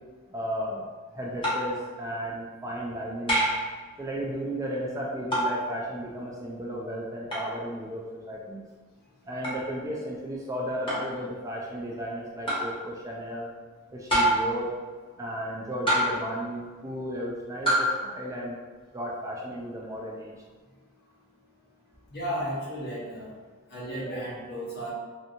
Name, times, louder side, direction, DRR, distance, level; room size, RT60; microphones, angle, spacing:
voice 1, 0.3-0.8 1.1-3.4 4.0-8.6 9.2-13.5 13.9-14.7 15.2-18.6 18.9-20.3, equal, 15° right, -3 dB, 0.3 m, -34 dB
sound 1, 1.4-1.8 3.3-3.7 5.3-5.6 7.3-7.5 9.4-9.6 10.9-11.1 12.5-12.7 14.1-14.6 15.9-16.3 17.7-18.0, right 1 dB, 25° left, 0.9 m, -25 dB
voice 2, 22.1-23.3 23.7-24.9, equal, 50° left, -6 dB, 0.8 m, -34 dB
2.6 x 2.6 x 2.4 m, 1.4 s
head